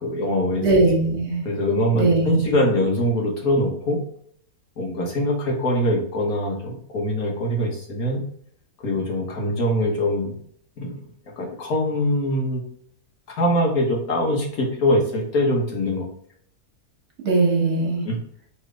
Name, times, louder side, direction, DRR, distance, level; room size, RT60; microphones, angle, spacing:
voice 1, 0.0-0.6 1.5-4.0 4.8-8.2 8.8-10.3 10.8-10.9 11.4-12.6 13.3-16.0 18.1-18.2, left 1 dB, 70° left, -1 dB, 1.6 m, -23 dB
voice 2, 0.6-1.5 1.9-2.5 17.2-18.0, right 2 dB, 60° right, -1 dB, 1.5 m, -20 dB
3.6 x 3.3 x 3.7 m, 0.62 s
omnidirectional pair, 1.6 m